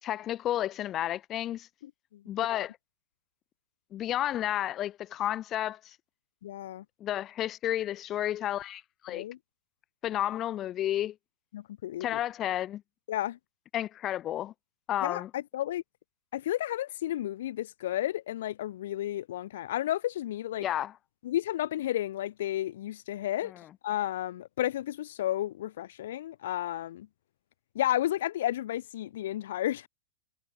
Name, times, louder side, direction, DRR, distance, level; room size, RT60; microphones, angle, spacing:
voice 1, 0.0-1.7 2.3-2.7 3.9-5.8 7.0-9.2 10.0-11.1 12.0-12.8 13.7-14.5 14.9-15.3 20.6-20.9, left 12 dB, 25° left, 4.0 m, -31 dB
voice 2, 1.8-2.2 2.5-2.6 6.4-6.8 9.1-9.4 11.5-12.2 13.1-13.4 15.0-15.8 16.3-20.7 21.2-23.5 23.8-27.1 27.7-29.9, left 13 dB, 65° left, 2.4 m, -32 dB
supercardioid pair, 160°, 0 cm